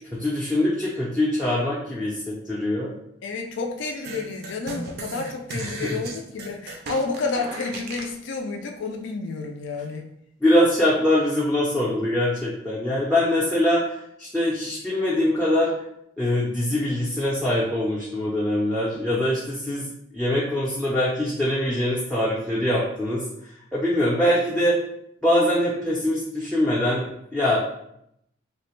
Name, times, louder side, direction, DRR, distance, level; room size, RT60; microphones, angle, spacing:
voice 1, 0.1-2.9 5.5-6.0 10.4-15.7 16.2-24.8 25.2-27.6, left 1 dB, ahead, -6 dB, 0.5 m, -23 dB
voice 2, 3.2-10.1, left 4 dB, 65° left, 3 dB, 0.3 m, -30 dB
sound 1, 4.0-8.2, right 3 dB, 50° right, 0.4 m, -36 dB
3.2 x 2.1 x 3.0 m, 0.75 s
head